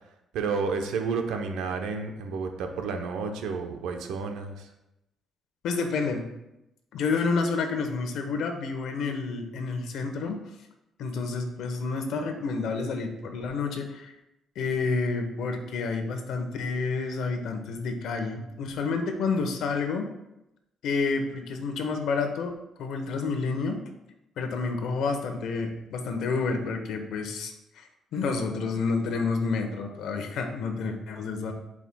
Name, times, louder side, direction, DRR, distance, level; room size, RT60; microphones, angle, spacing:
voice 1, 0.3-4.7, right 5 dB, 90° right, 5 dB, 0.8 m, -31 dB
voice 2, 5.6-6.2 6.9-10.4 11.0-14.1 14.6-20.1 20.8-22.5 22.8-23.8 24.4-27.9 28.1-31.5, left 4 dB, 80° left, 5 dB, 1.0 m, -29 dB
11.0 x 4.9 x 2.3 m, 0.90 s
cardioid pair, 90°, 0 cm